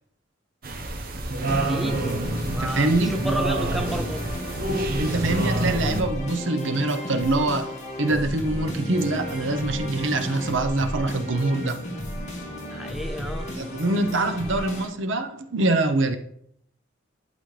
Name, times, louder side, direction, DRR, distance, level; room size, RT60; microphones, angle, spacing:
sound 1, 0.6-6.0, right 2 dB, 50° right, 0.9 m, -27 dB
sound 2, 1.4-14.9, left 1 dB, 35° left, 1.9 m, -34 dB
voice 1, 1.5-2.1 2.5-4.2 12.7-13.5, equal, ahead, 4 dB, 0.4 m, -32 dB
voice 2, 2.5-3.1 5.0-7.7 8.0-11.8 13.5-16.2, right 2 dB, 75° right, 8 dB, 0.8 m, -24 dB
11.5 x 4.1 x 3.3 m, 0.71 s
head